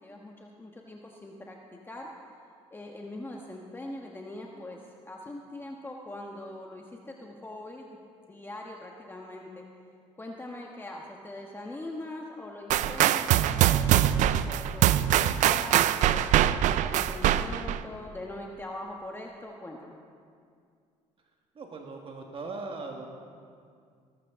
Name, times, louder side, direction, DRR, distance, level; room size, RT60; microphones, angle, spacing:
voice 1, 0.0-1.6 1.8-2.1 2.7-4.8 5.0-7.9 8.3-9.6 10.2-19.9, left 1 dB, 15° left, 0 dB, 1.3 m, -42 dB
sound 1, 12.7-17.8, right 12 dB, 65° right, 0.5 m, -23 dB
voice 2, 21.6-23.0, right 3 dB, 40° right, 1 dB, 1.6 m, -39 dB
19.0 x 12.5 x 3.7 m, 2.2 s
supercardioid pair, 80°, 13 cm